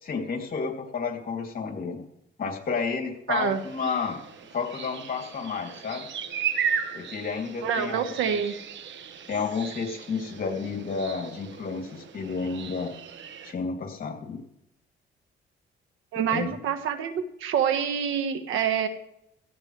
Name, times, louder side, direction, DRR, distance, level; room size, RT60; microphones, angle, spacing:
voice 1, 0.0-2.0 2.4-4.2 4.5-6.1 6.9-8.4 9.3-12.9 13.4-14.4 16.3-16.5, left 5 dB, 45° left, 1 dB, 3.0 m, -31 dB
voice 2, 3.3-3.6 7.6-8.5 16.1-18.9, right 8 dB, 85° right, 9 dB, 1.4 m, -26 dB
sound 1, 3.5-13.5, right 7 dB, 70° right, 1.4 m, -36 dB
17.0 x 15.0 x 3.3 m, 0.80 s
cardioid pair, 90°, 20 cm